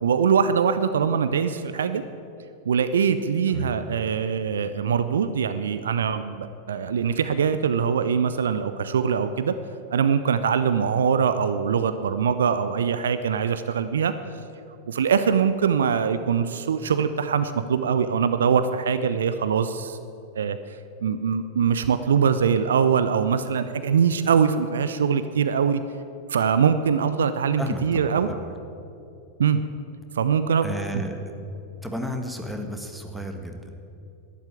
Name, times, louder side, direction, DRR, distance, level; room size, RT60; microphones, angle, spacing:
voice 1, 0.0-2.0 2.7-9.5 9.9-14.1 14.9-20.0 20.3-20.6 21.0-25.8 26.3-28.3 29.4-29.6 30.1-30.7, right 7 dB, 65° right, 11 dB, 0.6 m, -22 dB
voice 2, 27.6-28.4 30.6-31.3 31.8-33.9, equal, 5° right, 4 dB, 1.7 m, -33 dB
12.0 x 11.0 x 9.0 m, 2.7 s
figure-of-eight pair, 90°, 0 cm